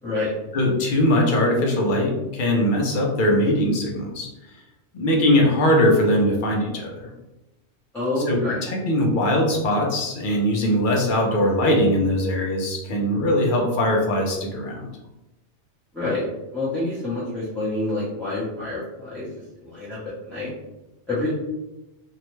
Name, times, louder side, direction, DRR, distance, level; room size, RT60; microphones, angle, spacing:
voice 1, 0.5-4.3 4.9-7.1 8.3-14.8, left 1 dB, 55° left, 0 dB, 0.7 m, -21 dB
voice 2, 7.9-8.6 15.9-16.3 16.5-19.3 19.6-20.0 20.2-20.5 21.1-21.3, left 2 dB, ahead, -11 dB, 0.5 m, -27 dB
2.7 x 2.1 x 3.0 m, 0.99 s
omnidirectional pair, 1.2 m